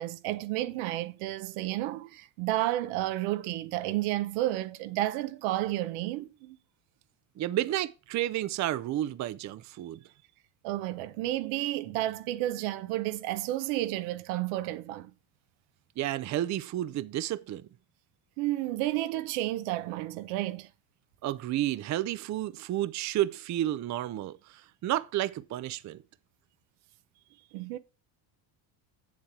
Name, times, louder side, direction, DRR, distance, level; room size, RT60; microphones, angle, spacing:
voice 1, 0.0-6.6 10.6-15.1 18.4-20.7 27.5-27.8, right 15 dB, 80° right, 0.9 m, -31 dB
voice 2, 7.4-10.0 16.0-17.7 21.2-26.0, right 13 dB, 40° right, 0.5 m, -31 dB
7.4 x 7.3 x 4.7 m
supercardioid pair, 105°, 48 cm